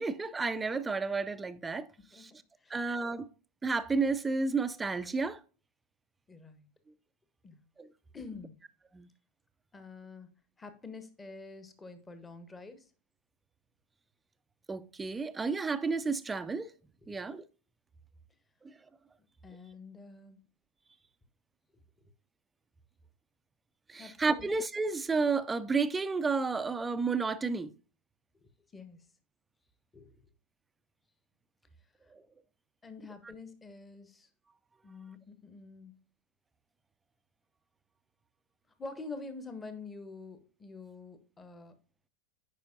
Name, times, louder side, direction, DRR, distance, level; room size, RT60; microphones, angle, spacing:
voice 1, 0.0-1.9 2.1-2.3 2.7-3.3 3.6-5.4 7.8-7.9 8.9-9.1 14.7-16.7 17.1-17.4 18.6-18.7 23.9-27.7 32.1-32.2, right 4 dB, 10° right, 0.4 m, -31 dB
voice 2, 2.0-2.3 2.6-2.8 6.3-6.7 7.4-7.6 8.1-8.6 9.7-10.3 10.6-12.9 17.1-17.2 19.2-20.5 24.0-24.5 28.4-29.0 29.9-30.1 32.8-34.3 34.8-35.9 38.8-41.7, left 3 dB, 15° left, 0.9 m, -47 dB
9.4 x 4.8 x 2.5 m
figure-of-eight pair, 90°, 0 cm